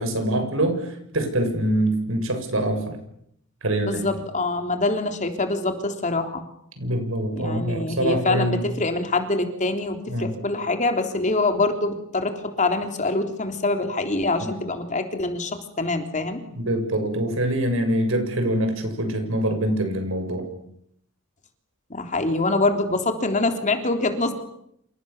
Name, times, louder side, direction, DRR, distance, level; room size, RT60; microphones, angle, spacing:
voice 1, 0.0-3.0 3.6-4.0 6.8-8.6 10.1-10.3 14.4-14.5 16.5-20.5, right 1 dB, 70° right, 6 dB, 7.4 m, -24 dB
voice 2, 3.8-6.4 7.3-16.4 21.9-24.3, left 2 dB, 35° left, 5 dB, 3.6 m, -25 dB
28.5 x 28.0 x 7.3 m, 0.74 s
head